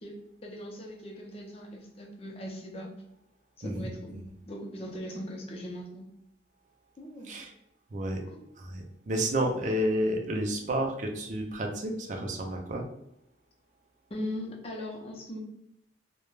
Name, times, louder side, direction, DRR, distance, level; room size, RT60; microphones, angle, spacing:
voice 1, 0.0-2.9 3.6-4.2 4.5-6.0 7.0-7.4 8.2-8.4 14.1-15.4, left 1 dB, 35° left, 0 dB, 0.5 m, -40 dB
voice 2, 3.6-4.2 7.2-7.5 7.9-8.2 8.6-12.9, right 1 dB, 45° right, 2 dB, 0.5 m, -31 dB
2.3 x 2.1 x 3.1 m, 0.78 s
head